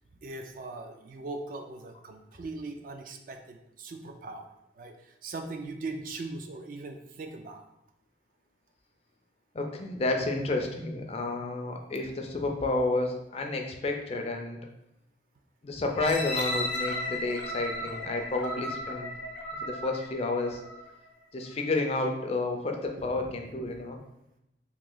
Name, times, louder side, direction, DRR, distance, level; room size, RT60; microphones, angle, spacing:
voice 1, 0.2-7.6 23.0-23.3, right 3 dB, 50° right, 5 dB, 0.3 m, -40 dB
voice 2, 9.5-14.6 15.6-19.1 19.6-20.6 21.3-24.0, left 2 dB, 35° left, 3 dB, 0.4 m, -30 dB
sound 1, 15.9-20.9 21.5-21.6, left 1 dB, 75° left, 0.7 m, -35 dB
3.0 x 2.7 x 3.8 m, 0.86 s
head